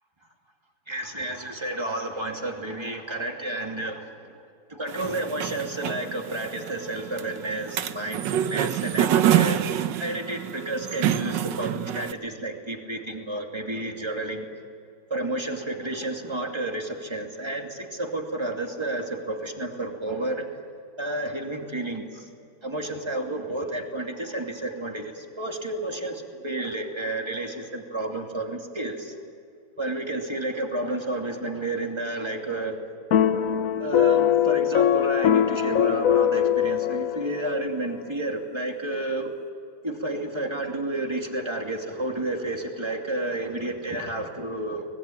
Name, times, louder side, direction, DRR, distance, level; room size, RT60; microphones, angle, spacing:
voice 1, 0.9-4.1 4.7-7.7 7.9-9.7 10.0-14.5 15.1-20.5 21.0-22.0 22.6-29.1 29.8-32.8 33.8-39.3 39.8-44.9, right 2 dB, 15° right, 2 dB, 2.6 m, -31 dB
sound 1, 4.9-12.1, right 10 dB, 75° right, 1.5 m, -26 dB
sound 2, 33.1-37.6, left 10 dB, 60° left, 1.0 m, -22 dB
24.5 x 21.0 x 8.8 m, 2.5 s
omnidirectional pair, 2.0 m